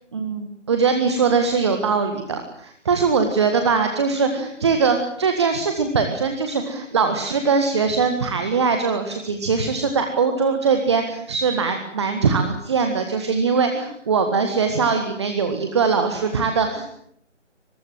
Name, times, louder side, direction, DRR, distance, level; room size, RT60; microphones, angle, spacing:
voice 1, 0.1-16.9, right 5 dB, 25° right, 6 dB, 1.8 m, -21 dB
24.0 x 22.5 x 7.7 m, 0.68 s
figure-of-eight pair, 155°, 36 cm